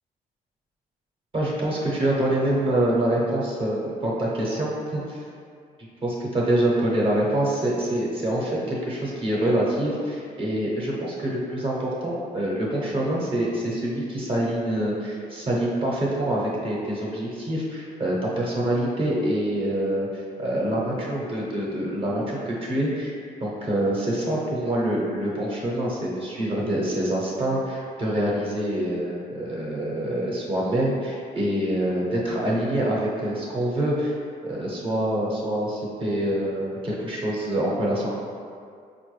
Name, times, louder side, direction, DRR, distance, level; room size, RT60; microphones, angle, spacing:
voice 1, 1.3-5.0 6.0-20.1 20.4-23.1 23.4-34.1 34.4-38.1, right 1 dB, 35° right, -5 dB, 0.7 m, -25 dB
4.4 x 2.2 x 3.1 m, 2.3 s
cardioid pair, 125°, 16 cm